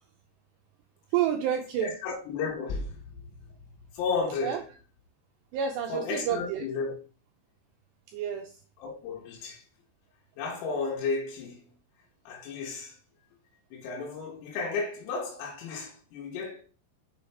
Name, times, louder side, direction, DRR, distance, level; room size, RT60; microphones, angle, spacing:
voice 1, 1.1-1.9 4.4-4.6 5.5-6.6 8.1-8.5, right 9 dB, 90° right, 2.4 m, -29 dB
voice 2, 1.8-3.0 3.9-4.6 5.9-6.9 8.8-9.6 10.4-11.7 12.3-13.0 13.7-16.6, left 4 dB, 85° left, 4.0 m, -33 dB
7.3 x 7.1 x 3.4 m
omnidirectional pair, 5.9 m